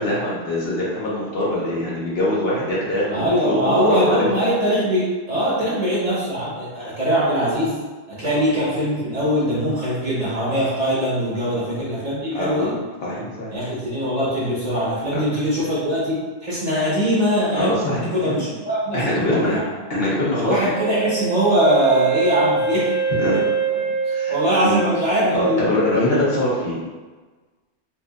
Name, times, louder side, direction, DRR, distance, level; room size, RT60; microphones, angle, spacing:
voice 1, 0.0-4.3 6.8-6.9 11.5-11.6 12.3-13.5 15.1-15.2 17.5-18.4 18.9-19.6 19.9-20.7 23.2-23.4 24.1-24.4 24.6-24.8 25.3-26.8, left 1 dB, 65° left, -6 dB, 1.1 m, -23 dB
voice 2, 3.1-7.8 8.1-12.7 13.5-17.7 18.0-19.7 20.4-22.9 23.3-23.5 24.3-25.7, equal, 40° right, -8 dB, 1.1 m, -21 dB
Wind instrument woodwind instrument, 20.7-25.6, right 6 dB, 90° right, 0.9 m, -24 dB
4.4 x 2.4 x 2.4 m, 1.3 s
omnidirectional pair, 1.1 m